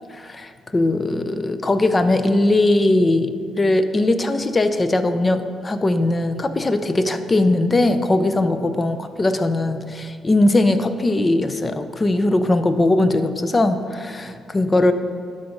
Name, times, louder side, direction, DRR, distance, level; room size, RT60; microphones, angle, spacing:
voice 1, 0.1-14.9, left 2 dB, 25° left, 10 dB, 0.5 m, -20 dB
11.5 x 4.1 x 5.1 m, 2.1 s
cardioid pair, 90°, 0 cm